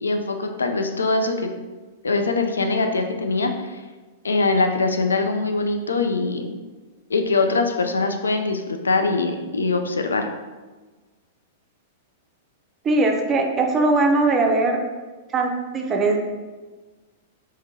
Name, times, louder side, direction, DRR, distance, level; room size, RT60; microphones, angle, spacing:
voice 1, 0.0-1.5 2.0-3.5 4.2-6.6 7.1-10.3, left 3 dB, 80° left, 5 dB, 0.4 m, -22 dB
voice 2, 12.8-14.8 15.3-16.2, right 2 dB, 25° right, 2 dB, 0.6 m, -20 dB
3.6 x 3.3 x 2.7 m, 1.3 s
figure-of-eight pair, 100°, 0 cm